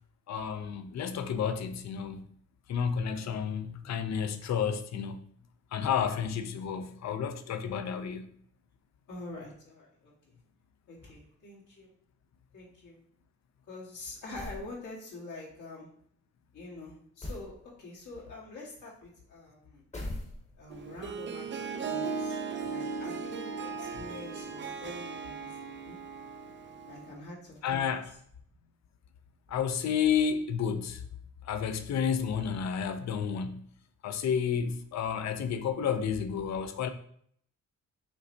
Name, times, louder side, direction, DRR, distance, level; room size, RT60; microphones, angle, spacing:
voice 1, 0.3-2.3 2.7-5.2 5.7-8.3 27.6-28.1 29.5-31.0 31.4-33.7 34.0-36.9, left 7 dB, 60° left, 0.5 m, -31 dB
voice 2, 9.1-10.1 10.9-11.9 12.5-13.0 13.7-15.9 16.5-19.8 20.6-22.4 22.7-26.0 26.8-28.0, left 2 dB, 80° left, 1.6 m, -46 dB
sound 1, 14.3-14.7 17.2-17.5 19.9-20.7, left 1 dB, 20° left, 0.9 m, -39 dB
Harp, 20.7-27.2, right 5 dB, 40° right, 0.4 m, -37 dB
5.2 x 3.2 x 2.7 m
cardioid pair, 115°, 30 cm